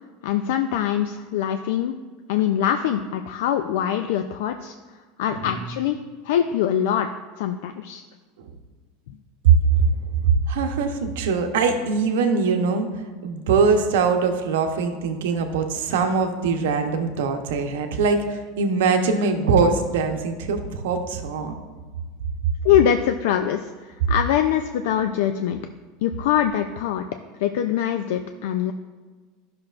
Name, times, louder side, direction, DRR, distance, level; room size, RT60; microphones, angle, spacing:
voice 1, 0.2-1.9 2.3-4.7 5.2-6.0 6.2-7.1 7.4-8.0 22.6-25.6 26.0-27.1 27.4-28.7, left 10 dB, 65° left, 7 dB, 0.4 m, -23 dB
voice 2, 5.3-5.6 8.4-8.5 9.4-12.9 13.2-21.5, right 5 dB, 90° right, 5 dB, 0.8 m, -22 dB
12.5 x 6.0 x 2.5 m, 1.4 s
supercardioid pair, 170°, 0 cm